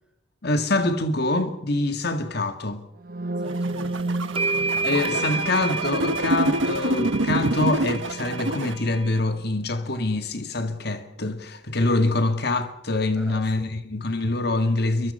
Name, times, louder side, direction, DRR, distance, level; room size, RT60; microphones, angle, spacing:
voice 1, 0.4-2.8 4.8-15.1, left 2 dB, 55° left, 1.7 m, -25 dB
sound 1, 3.0-10.8, right 2 dB, 50° right, 1.4 m, -34 dB
voice 2, 3.4-5.0 13.1-13.8, equal, 5° right, 6.0 m, -46 dB
sound 2, 3.5-8.7, right 2 dB, 80° right, 1.2 m, -26 dB
sound 3, 3.7-3.8 4.3-9.2, right 3 dB, 30° right, 1.5 m, -30 dB
29.0 x 24.0 x 5.4 m
head